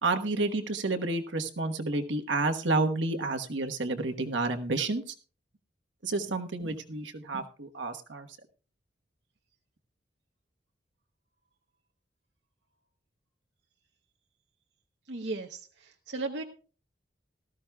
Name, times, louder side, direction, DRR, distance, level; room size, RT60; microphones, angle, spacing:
voice 1, 0.0-5.1 6.0-8.3, right 3 dB, 90° right, 6 dB, 1.2 m, -30 dB
voice 2, 15.1-16.4, right 3 dB, 70° right, 3 dB, 0.9 m, -36 dB
18.0 x 13.5 x 2.3 m, 0.37 s
head